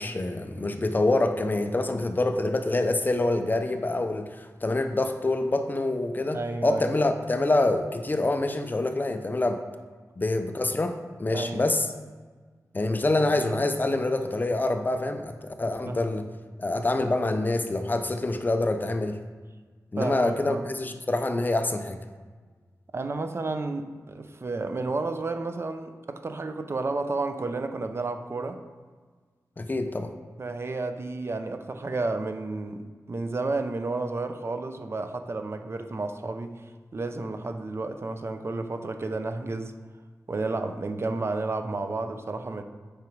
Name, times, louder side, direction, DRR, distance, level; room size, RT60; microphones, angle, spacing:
voice 1, 0.0-9.6 10.2-11.9 12.7-16.3 16.6-19.2 19.9-22.0 29.6-30.1, left 2 dB, 30° left, 7 dB, 0.5 m, -26 dB
voice 2, 6.3-6.9 11.3-11.6 15.9-16.0 20.0-20.7 22.9-28.6 30.4-36.6 36.9-39.7 40.3-42.6, right 3 dB, 40° right, 7 dB, 0.6 m, -31 dB
8.7 x 5.1 x 4.6 m, 1.5 s
wide cardioid pair, 125°, 6 cm